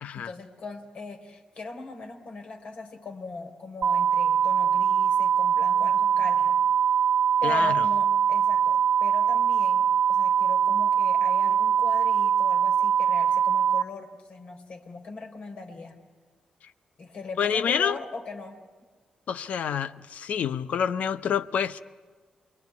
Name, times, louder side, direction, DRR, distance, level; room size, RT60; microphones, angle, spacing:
voice 1, 0.1-6.6 7.4-16.0 17.0-18.6, left 3 dB, 55° left, 4 dB, 3.8 m, -40 dB
sound 1, 3.8-13.8, right 8 dB, 65° right, 0.9 m, -22 dB
voice 2, 7.4-7.8 17.4-18.0 19.3-21.8, left 8 dB, 75° left, 13 dB, 0.8 m, -27 dB
28.5 x 22.0 x 9.6 m, 1.5 s
cardioid pair, 95°, 2 cm